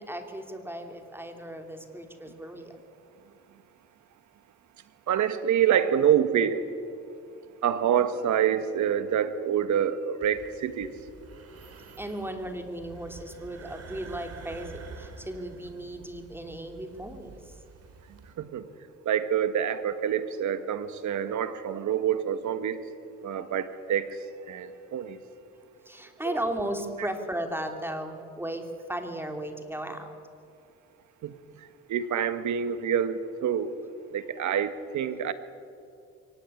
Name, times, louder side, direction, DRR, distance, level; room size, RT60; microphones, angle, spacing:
voice 1, 0.0-2.8 12.0-17.4 25.9-30.1, right 1 dB, 5° right, 5 dB, 3.0 m, -35 dB
voice 2, 5.1-6.6 7.6-11.0 18.4-18.7 19.0-22.9 23.2-25.2 26.2-26.4 31.2-33.8 34.1-35.3, right 9 dB, 70° right, 11 dB, 1.6 m, -27 dB
sound 1, 10.2-18.3, right 4 dB, 50° right, 4.0 m, -48 dB
23.5 x 17.5 x 9.8 m, 2.4 s
cardioid pair, 90°, 30 cm